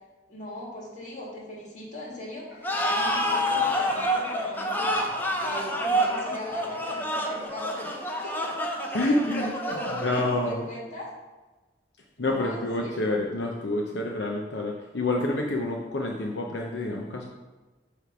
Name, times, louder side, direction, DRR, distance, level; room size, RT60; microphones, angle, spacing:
voice 1, 0.3-8.5 8.9-9.0 9.3-11.1 12.2-13.2, equal, 45° left, -3 dB, 2.0 m, -39 dB
sound 1, 2.5-7.5, equal, 10° right, 2.2 m, -46 dB
sound 2, 2.6-10.5, equal, 10° left, 0.7 m, -28 dB
voice 2, 8.9-9.5 9.9-10.7 12.2-17.2, left 2 dB, 85° left, 0 dB, 0.7 m, -28 dB
8.1 x 3.3 x 5.9 m, 1.2 s
head